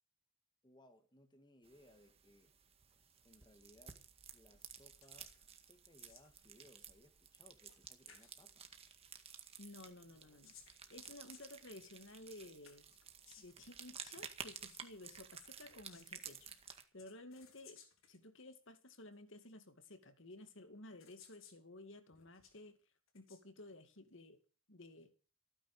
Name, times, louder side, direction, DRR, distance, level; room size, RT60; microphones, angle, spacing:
voice 1, 0.6-2.5 3.2-4.0 4.3-8.7, left 1 dB, 20° left, 1.9 m, -65 dB
sound 1, 1.6-16.8, right 7 dB, 30° right, 1.8 m, -54 dB
sound 2, 5.0-5.4 5.7-6.4 7.7-7.8 8.1-8.3 10.1-12.0 12.6-13.7 15.6-16.3 17.0-18.2 19.1-19.2 20.3-20.4 21.0-21.6 22.1-22.6 23.1-23.4, left 7 dB, 85° left, 3.9 m, -63 dB
voice 2, 9.6-12.9 13.4-16.5 16.9-17.8 18.1-22.8 23.1-24.4 24.7-25.1, left 2 dB, 65° left, 2.3 m, -55 dB
16.0 x 9.8 x 6.8 m
head